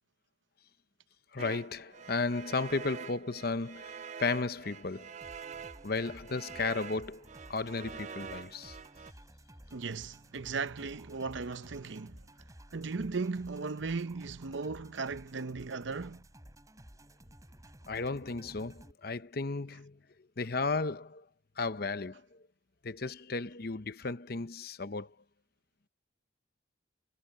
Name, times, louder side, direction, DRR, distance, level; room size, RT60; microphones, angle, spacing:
voice 1, 1.3-5.1 5.8-8.8 17.9-20.0 20.4-21.3 21.6-22.4 22.8-25.2, left 3 dB, 50° left, 0.8 m, -34 dB
sound 1, 1.4-9.1, right 6 dB, 35° right, 0.3 m, -46 dB
sound 2, 5.2-18.9, right 1 dB, 15° right, 6.1 m, -54 dB
voice 2, 9.7-12.2 12.7-16.2, right 4 dB, 70° right, 0.7 m, -37 dB
head